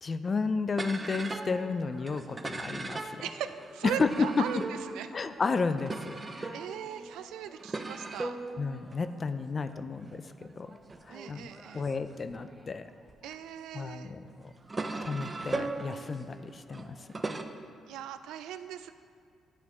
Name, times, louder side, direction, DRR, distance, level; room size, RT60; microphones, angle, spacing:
voice 1, 0.0-3.2 4.0-4.3 5.1-6.6 8.6-10.2 10.5-10.8 11.1-11.5 11.7-12.9 13.7-14.2 15.0-17.0, left 4 dB, 35° left, 11 dB, 0.4 m, -32 dB
sound 1, 0.7-13.3 14.0-17.4, right 3 dB, 25° right, 0.4 m, -39 dB
voice 2, 3.2-5.1 6.2-8.4 11.1-11.9 13.2-14.1 17.8-18.9, right 10 dB, 90° right, 11 dB, 0.3 m, -39 dB
10.5 x 4.5 x 3.6 m, 2.2 s
cardioid pair, 90°, 0 cm